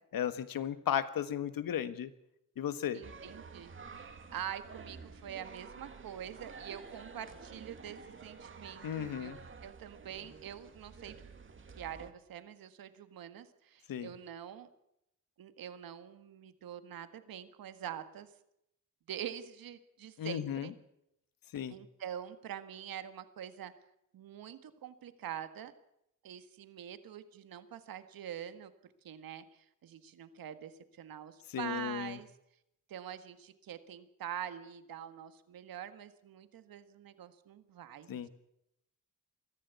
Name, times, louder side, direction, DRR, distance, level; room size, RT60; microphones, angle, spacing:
voice 1, 0.1-2.1 2.6-3.0 8.8-9.4 13.9-14.1 20.2-20.7 21.5-21.7 31.5-32.2 38.1-38.3, left 9 dB, 80° left, 12 dB, 1.5 m, -35 dB
voice 2, 2.9-3.7 4.0-9.3 9.6-11.2 11.8-14.7 15.4-18.3 19.1-20.7 21.7-23.7 24.1-25.7 26.2-28.7 29.0-32.3 32.9-38.3, right 10 dB, 85° right, 11 dB, 1.7 m, -45 dB
sound 1, 3.0-12.1, right 5 dB, 35° right, 2.0 m, -50 dB
23.0 x 14.5 x 8.2 m, 0.80 s
wide cardioid pair, 125°, 34 cm